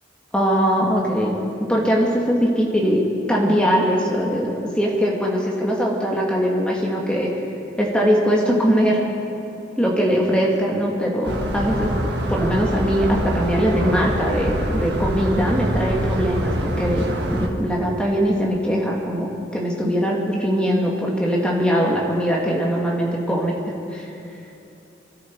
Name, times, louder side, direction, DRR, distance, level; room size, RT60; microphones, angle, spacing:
voice 1, 0.3-7.3 7.8-9.1 9.8-11.9 12.3-17.0 17.3-23.5 23.9-24.1, equal, 5° left, -3 dB, 2.1 m, -21 dB
sound 1, 11.2-17.5, equal, 65° right, 1.6 m, -24 dB
23.5 x 13.0 x 4.7 m, 2.8 s
head